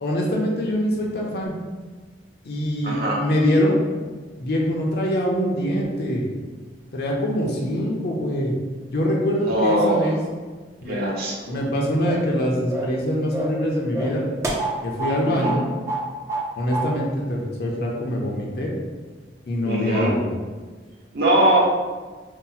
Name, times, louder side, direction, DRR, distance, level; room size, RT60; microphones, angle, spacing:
voice 1, 0.0-1.5 2.4-3.7 4.4-6.2 6.9-8.5 8.9-10.2 10.8-11.0 11.5-14.2 14.8-15.6 16.6-18.7 19.5-20.3, equal, 60° left, -2 dB, 0.5 m, -24 dB
voice 2, 2.8-3.2 9.5-10.1 10.9-11.6 15.4-15.6 19.6-20.1 21.1-21.6, right 1 dB, 55° right, -4 dB, 0.7 m, -21 dB
sound 1, 12.0-12.3 12.7-13.0 13.3-13.6 13.9-15.2 15.4-15.6 15.9-16.5 16.7-16.9, right 2 dB, 15° right, 0.3 m, -27 dB
2.7 x 2.0 x 3.9 m, 1.4 s
head